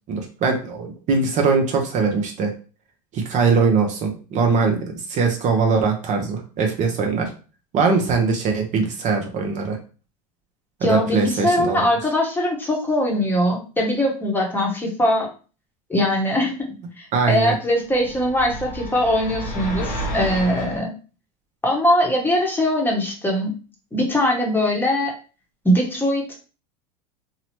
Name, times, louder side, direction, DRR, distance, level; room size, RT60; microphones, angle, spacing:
voice 1, 0.1-2.5 3.1-7.3 7.7-9.8 10.9-11.9 17.1-17.5, right 4 dB, 40° right, 3 dB, 0.6 m, -21 dB
voice 2, 10.8-15.3 15.9-16.7 17.0-20.9 21.6-23.5 23.9-25.1 25.6-26.3, left 1 dB, 10° left, -1 dB, 0.8 m, -21 dB
sound 1, 17.9-20.8, equal, 70° left, 0.7 m, -30 dB
2.8 x 2.0 x 3.0 m, 0.36 s
hypercardioid pair, 105°, 19 cm